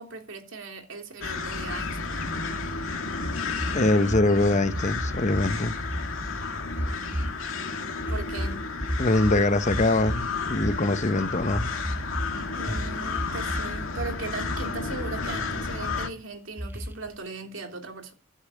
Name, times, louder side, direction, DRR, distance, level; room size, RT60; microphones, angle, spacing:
voice 1, 0.0-2.3 8.1-8.6 12.5-18.1, right 3 dB, 65° right, 3.0 m, -38 dB
sound 1, 1.2-16.1, left 4 dB, 70° left, 2.1 m, -32 dB
sound 2, 3.2-5.5 5.7-6.1 6.7-7.6 8.0-10.9 11.5-12.3 12.6-13.7 13.9-14.6 14.9-15.5 15.9-16.0 16.6-17.2, equal, 10° right, 1.0 m, -32 dB
voice 2, 3.7-5.8 9.0-11.7, left 2 dB, 35° left, 0.9 m, -23 dB
12.0 x 9.5 x 8.4 m
head